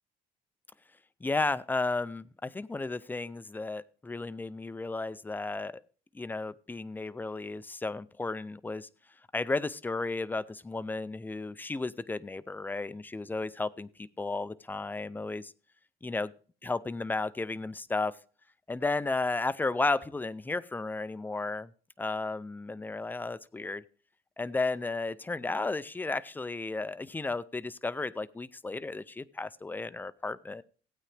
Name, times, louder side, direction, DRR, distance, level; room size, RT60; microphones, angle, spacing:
voice 1, 1.2-5.7 6.1-8.9 9.3-15.5 16.0-16.3 16.6-18.2 18.7-21.7 22.0-23.8 24.4-30.6, left 3 dB, 10° left, 18 dB, 0.4 m, -33 dB
16.0 x 8.9 x 3.3 m, 0.39 s
cardioid pair, 110°, 17 cm